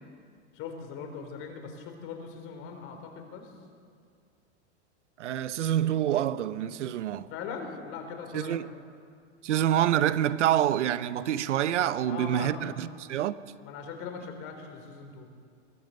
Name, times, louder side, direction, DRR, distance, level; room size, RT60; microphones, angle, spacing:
voice 1, 0.5-3.5 7.3-8.7 12.1-12.7 13.6-15.3, left 5 dB, 40° left, 4.1 m, -40 dB
voice 2, 5.2-7.3 8.3-8.6 9.4-13.3, right 11 dB, 85° right, 1.0 m, -27 dB
23.5 x 16.5 x 7.8 m
supercardioid pair, 145°, 35 cm